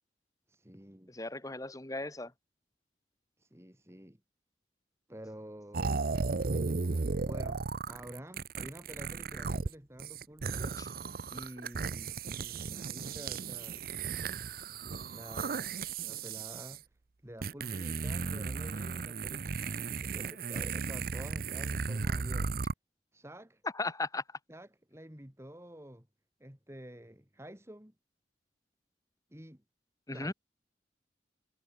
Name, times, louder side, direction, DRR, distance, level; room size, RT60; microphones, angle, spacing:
voice 1, 0.5-1.2 3.4-4.2 5.1-6.0 7.3-10.8 11.3-13.8 15.1-15.8 16.1-16.9 17.2-22.5 23.1-23.6 24.5-26.1 26.4-27.9 29.3-29.6 30.1-30.3, equal, 15° right, 2.8 m, -49 dB
voice 2, 1.1-2.3 10.8-10.9 23.7-24.2 30.1-30.3, left 2 dB, 20° left, 1.4 m, -36 dB
sound 1, 5.7-9.7 10.0-16.8 17.4-22.7, right 4 dB, 55° right, 0.7 m, -35 dB
head